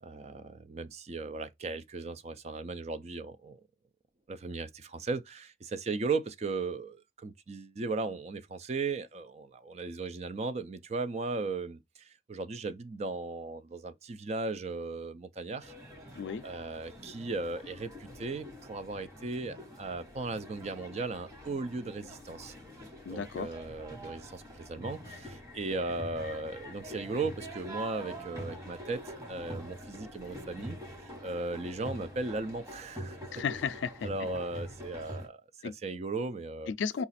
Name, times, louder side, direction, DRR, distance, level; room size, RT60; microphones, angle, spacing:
voice 1, 0.0-3.6 4.3-15.7 16.4-22.5 23.1-33.4 34.0-36.7, right 3 dB, 35° right, 0.4 m, -37 dB
sound 1, 15.6-35.3, equal, 15° right, 1.2 m, -45 dB
voice 2, 23.1-23.5 33.3-34.1 35.6-35.7 36.7-37.0, left 6 dB, 75° left, 0.4 m, -34 dB
4.9 x 2.4 x 4.0 m
head